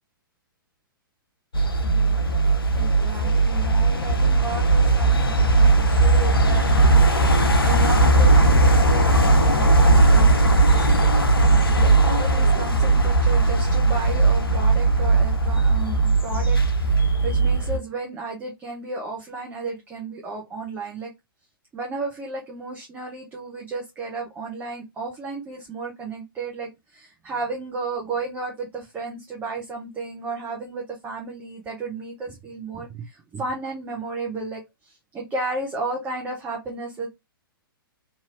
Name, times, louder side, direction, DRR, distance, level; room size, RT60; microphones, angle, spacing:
sound 1, 1.5-17.8, right 2 dB, 80° left, 0.5 m, -18 dB
voice 1, 2.8-21.1 21.7-37.1, right 3 dB, 15° right, -1 dB, 0.7 m, -33 dB
2.9 x 2.8 x 2.4 m, 0.20 s
figure-of-eight pair, 115°, 12 cm